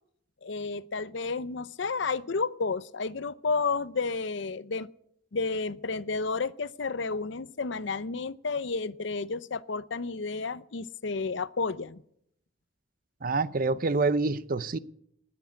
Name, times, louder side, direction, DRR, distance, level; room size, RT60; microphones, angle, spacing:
voice 1, 0.4-4.9 5.3-12.0, left 4 dB, 60° left, 0.6 m, -31 dB
voice 2, 13.2-14.8, right 3 dB, 45° right, 0.6 m, -27 dB
19.5 x 8.1 x 8.2 m
head